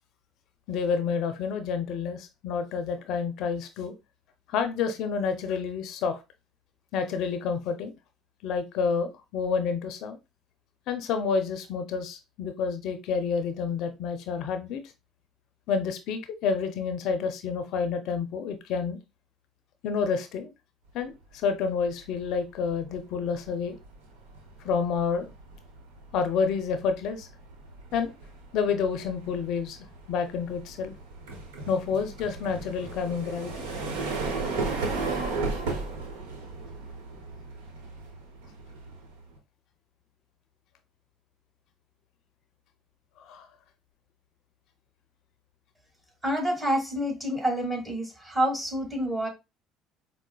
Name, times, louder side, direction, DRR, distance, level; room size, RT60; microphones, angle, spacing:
voice 1, 0.7-3.9 4.5-6.2 6.9-7.9 8.4-10.2 10.9-14.8 15.7-19.0 19.8-20.5 20.9-23.8 24.6-25.3 26.1-27.3 27.9-28.1 28.5-29.8 30.1-30.9 31.7-33.7 43.2-43.5, left 5 dB, 65° left, 8 dB, 0.4 m, -29 dB
sound 1, 22.0-22.3 22.6-39.4, right 3 dB, 85° right, 0.8 m, -36 dB
voice 2, 46.2-49.3, equal, 15° right, 1 dB, 1.7 m, -28 dB
4.7 x 2.0 x 2.2 m, 0.25 s
hypercardioid pair, 70°, 0 cm